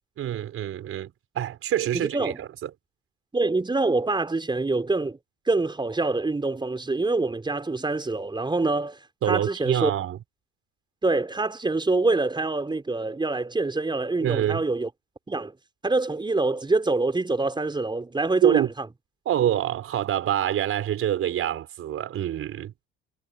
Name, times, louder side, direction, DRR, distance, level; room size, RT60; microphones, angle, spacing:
voice 1, 0.2-2.7 9.2-10.2 14.2-14.6 18.4-18.7 19.3-22.7, right 11 dB, 50° right, 4.3 m, -26 dB
voice 2, 1.9-2.4 3.3-5.2 5.5-9.0 9.3-9.9 11.0-14.9 15.3-15.5 15.8-18.9, right 3 dB, 15° right, 4.8 m, -25 dB
hypercardioid pair, 70°, 29 cm